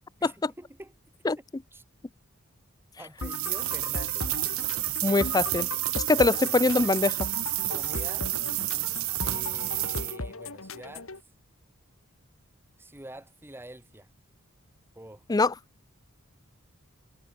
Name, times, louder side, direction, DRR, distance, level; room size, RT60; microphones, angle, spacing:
voice 1, 0.2-1.0 1.4-1.5 1.7-1.8 3.0-4.4 7.6-8.3 9.2-11.1 12.8-14.1 14.9-15.3, right 1 dB, 10° right, 2.4 m, -46 dB
sound 1, 3.2-11.2, left 2 dB, 75° left, 3.6 m, -38 dB
sound 2, 3.2-10.2, right 16 dB, 80° right, 1.3 m, -30 dB
voice 2, 5.0-5.7 6.0-7.2 15.3-15.5, left 3 dB, 20° left, 0.4 m, -23 dB
head